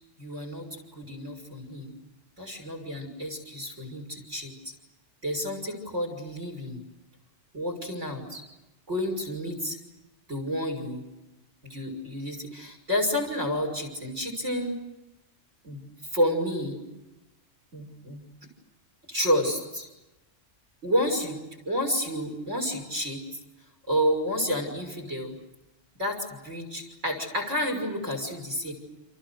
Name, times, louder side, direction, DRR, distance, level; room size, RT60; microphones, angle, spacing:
voice 1, 0.2-1.9 2.4-4.7 5.2-6.8 7.5-8.4 8.9-9.8 10.3-11.0 11.6-14.8 15.6-15.8 16.1-16.8 17.7-18.2 19.1-19.9 20.8-21.4 21.7-23.2 23.9-25.3 26.0-28.7, equal, 70° right, 4 dB, 6.4 m, -30 dB
29.5 x 29.0 x 6.7 m, 1.0 s
omnidirectional pair, 1.3 m